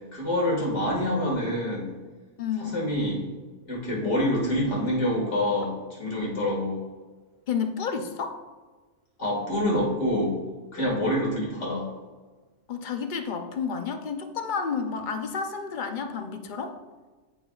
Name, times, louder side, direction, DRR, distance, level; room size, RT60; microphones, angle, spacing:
voice 1, 0.1-1.9 2.6-3.3 3.7-6.8 9.2-10.4 10.7-11.9, left 1 dB, 70° left, -4 dB, 2.4 m, -26 dB
voice 2, 2.4-2.8 7.5-8.4 10.8-11.1 12.7-16.7, left 6 dB, 50° left, 6 dB, 0.7 m, -31 dB
14.0 x 4.9 x 2.4 m, 1.3 s
omnidirectional pair, 1.2 m